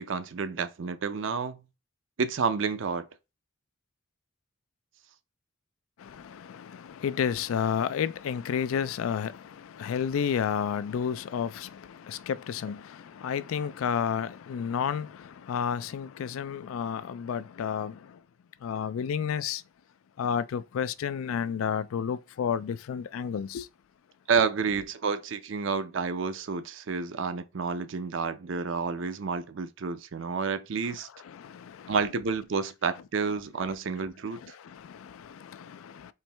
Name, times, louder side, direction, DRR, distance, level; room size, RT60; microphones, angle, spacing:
voice 1, 0.0-1.6 2.2-3.1 24.3-31.1 31.9-34.5, right 5 dB, 65° right, 0.5 m, -30 dB
voice 2, 6.0-18.2 18.6-19.6 20.2-23.7 31.2-31.9 34.4-36.1, left 7 dB, 85° left, 0.3 m, -31 dB
4.5 x 3.1 x 3.3 m
head